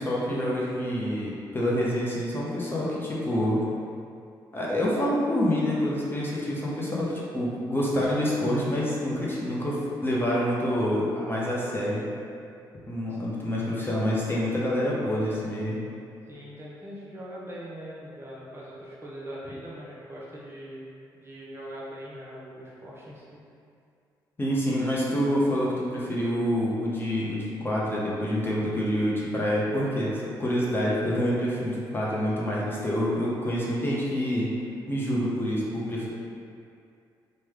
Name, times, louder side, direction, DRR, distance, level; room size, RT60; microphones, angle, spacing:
voice 1, 0.0-3.6 4.5-12.1 12.9-15.8 24.4-34.5 34.9-36.1, equal, 25° left, -6 dB, 0.7 m, -27 dB
voice 2, 16.3-20.9 21.1-23.2, equal, 25° right, -6 dB, 0.8 m, -41 dB
3.1 x 2.2 x 3.5 m, 2.4 s
supercardioid pair, 60°, 9 cm